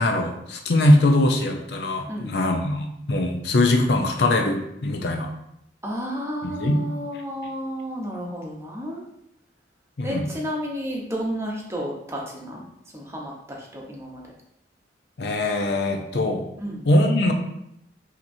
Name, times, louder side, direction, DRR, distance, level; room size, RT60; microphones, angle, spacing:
voice 1, 0.0-5.3 6.4-6.8 10.0-10.3 15.2-16.4 16.8-17.3, left 1 dB, 70° left, 4 dB, 0.6 m, -21 dB
voice 2, 2.1-2.4 5.8-9.0 10.0-12.6 12.9-14.2 16.6-16.8, equal, 15° right, -3 dB, 0.8 m, -32 dB
5.8 x 2.9 x 2.7 m, 0.78 s
head